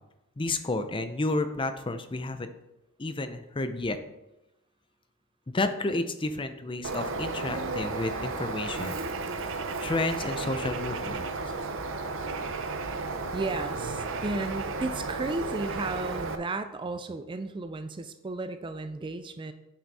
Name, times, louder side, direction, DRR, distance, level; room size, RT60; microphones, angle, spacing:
voice 1, 0.4-2.5 3.0-4.0 5.5-9.0 9.5-11.2, left 2 dB, 25° left, 9 dB, 0.6 m, -31 dB
Bird, 6.8-16.4, right 3 dB, 65° right, 0.7 m, -33 dB
voice 2, 13.3-19.5, right 3 dB, 25° right, 9 dB, 0.4 m, -34 dB
8.7 x 6.0 x 4.2 m, 0.93 s
head